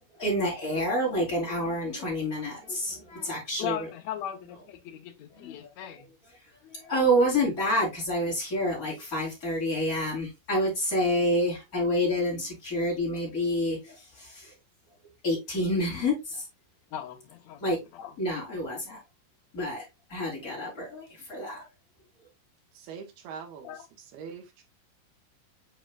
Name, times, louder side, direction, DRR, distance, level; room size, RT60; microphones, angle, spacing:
voice 1, 0.2-3.9 5.3-5.7 6.7-14.5 15.2-16.4 17.6-17.8 18.2-19.0 19.5-21.7, equal, 20° left, 4.5 m, -28 dB
voice 2, 3.6-6.1 16.9-18.1 23.6-23.9, left 11 dB, 65° left, 1.9 m, -38 dB
voice 3, 22.8-23.8 24.1-24.6, right 6 dB, 90° right, 3.3 m, -42 dB
8.1 x 5.5 x 2.5 m
omnidirectional pair, 4.3 m